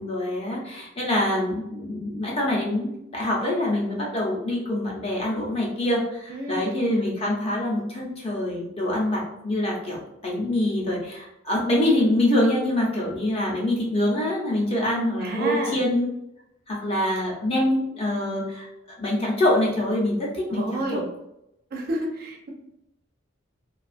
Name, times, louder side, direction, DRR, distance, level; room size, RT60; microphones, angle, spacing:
voice 1, 0.0-16.1 16.7-18.7 19.0-21.0, left 1 dB, 30° left, -4 dB, 0.6 m, -25 dB
voice 2, 6.3-6.9 15.2-15.8 20.5-21.0 21.7-22.5, right 1 dB, 45° right, 1 dB, 0.4 m, -30 dB
2.4 x 2.3 x 2.4 m, 0.83 s
head